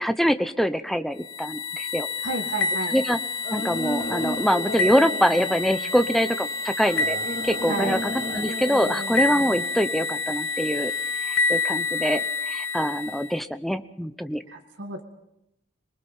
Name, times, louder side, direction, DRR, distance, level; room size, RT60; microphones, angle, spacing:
voice 1, 0.0-2.1 2.9-3.2 3.5-7.2 7.4-10.9 11.3-14.4, equal, ahead, 10 dB, 0.8 m, -24 dB
sound 1, 1.2-13.3, left 3 dB, 65° left, 2.0 m, -28 dB
voice 2, 2.2-2.9 7.7-8.0 14.5-15.0, right 2 dB, 65° right, 3 dB, 1.8 m, -31 dB
sound 2, 3.4-6.1 6.8-10.3, left 1 dB, 40° left, 2.9 m, -35 dB
26.5 x 20.0 x 5.6 m, 0.83 s
head